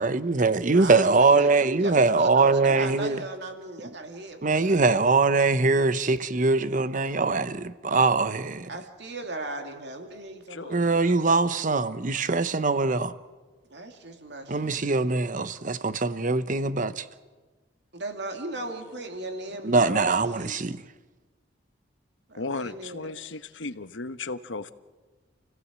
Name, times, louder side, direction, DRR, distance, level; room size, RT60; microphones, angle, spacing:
voice 1, 0.0-3.2 4.4-8.7 10.7-13.1 14.5-17.1 19.6-20.8, right 3 dB, 45° right, 0.8 m, -22 dB
voice 2, 0.6-4.8 8.7-10.8 13.7-14.8 17.9-20.6 22.3-23.1, right 2 dB, 65° right, 2.7 m, -37 dB
voice 3, 10.5-11.2 18.6-19.0 22.4-24.7, left 3 dB, 80° left, 1.0 m, -36 dB
29.0 x 16.0 x 7.5 m
head